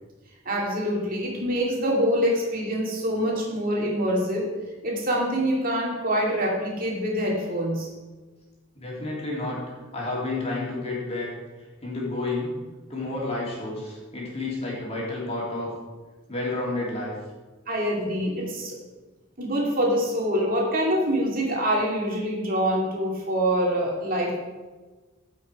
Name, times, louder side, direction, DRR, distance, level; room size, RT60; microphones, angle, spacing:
voice 1, 0.4-4.5 4.8-7.9 17.7-18.7 19.4-24.4, equal, 45° right, -3 dB, 2.5 m, -25 dB
voice 2, 8.7-9.6 9.9-11.3 11.8-12.5 12.9-15.7 16.3-17.1, left 2 dB, 30° left, -5 dB, 3.3 m, -30 dB
14.5 x 5.9 x 4.8 m, 1.3 s
head